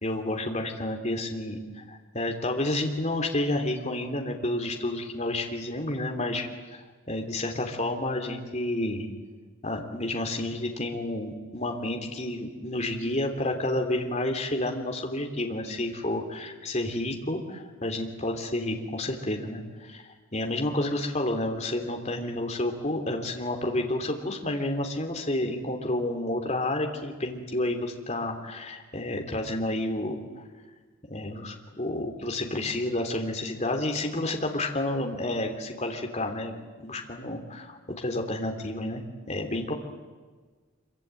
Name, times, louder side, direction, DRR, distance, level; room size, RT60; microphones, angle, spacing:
voice 1, 0.0-9.1 9.6-20.0 20.3-30.2 31.1-36.6 36.8-39.0 39.3-39.7, left 1 dB, 30° left, 3 dB, 3.2 m, -30 dB
26.5 x 24.0 x 9.1 m, 1.4 s
head